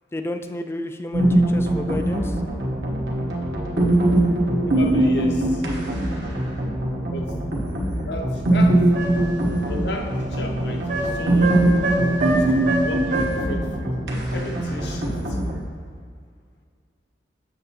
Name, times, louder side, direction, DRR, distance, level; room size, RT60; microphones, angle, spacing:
voice 1, 0.1-2.4, left 1 dB, 15° left, 7 dB, 0.3 m, -31 dB
sound 1, 1.1-15.6, right 1 dB, 70° right, 1.1 m, -22 dB
voice 2, 4.6-5.6 7.1-7.3 8.1-8.8 9.6-11.9 12.3-14.0 14.3-15.4, left 1 dB, 65° left, 2 dB, 0.8 m, -33 dB
sound 2, 8.9-9.3 10.9-13.4, right 1 dB, 45° right, 0.8 m, -26 dB
7.6 x 7.0 x 2.8 m, 2.1 s
head